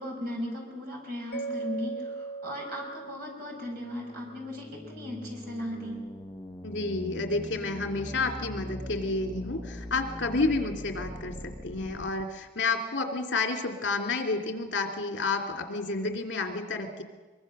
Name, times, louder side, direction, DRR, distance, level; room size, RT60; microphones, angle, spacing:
voice 1, 0.0-6.1, left 1 dB, 50° right, 0 dB, 6.3 m, -37 dB
Mallet percussion, 1.3-4.3, right 4 dB, 55° left, 1.2 m, -39 dB
sound 1, 3.4-12.2, left 1 dB, 15° left, 0.9 m, -42 dB
voice 2, 6.6-17.0, left 3 dB, 75° left, 4 dB, 2.6 m, -30 dB
23.5 x 23.0 x 6.6 m, 1.3 s
head